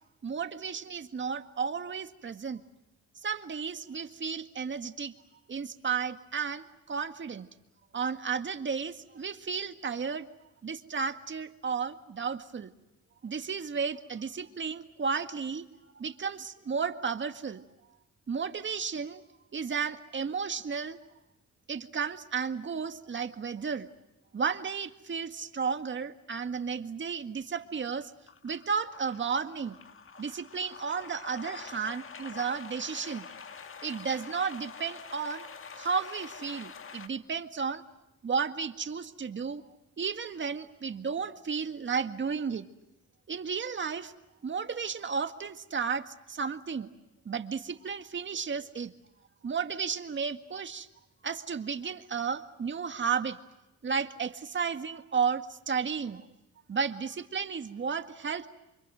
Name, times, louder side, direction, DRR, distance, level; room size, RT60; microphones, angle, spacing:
voice 1, 0.2-2.6 3.2-5.1 5.5-7.4 7.9-10.3 10.6-12.7 13.2-15.6 16.0-17.6 18.3-19.2 19.5-21.0 21.7-23.9 24.3-28.1 28.4-29.8 30.2-33.2 33.8-35.4 35.8-37.8 38.2-39.6 40.0-42.6 43.3-44.1 44.4-46.9 47.3-48.9 49.4-50.9 51.2-53.4 53.8-56.2 56.7-58.5, right 6 dB, 40° right, 8 dB, 1.9 m, -33 dB
sound 1, 27.6-27.9 28.3-37.1, left 6 dB, 45° left, 1.8 m, -46 dB
28.5 x 24.5 x 7.7 m, 0.93 s
cardioid pair, 90°, 30 cm